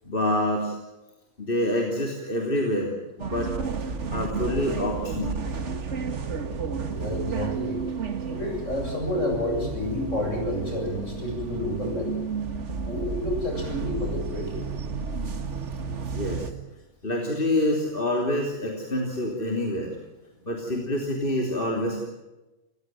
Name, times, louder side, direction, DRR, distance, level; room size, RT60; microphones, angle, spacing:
voice 1, 0.1-0.7 1.4-2.9 3.2-3.5 4.1-5.4 16.1-16.5 17.0-19.9 20.5-22.1, left 1 dB, 40° left, 1 dB, 3.5 m, -26 dB
sound 1, 3.2-16.5, right 5 dB, 60° right, 2.0 m, -32 dB
voice 2, 6.9-7.8 8.3-12.2 12.6-14.6, left 1 dB, 60° left, 1 dB, 8.6 m, -30 dB
29.0 x 16.0 x 9.2 m, 1.0 s
omnidirectional pair, 1.4 m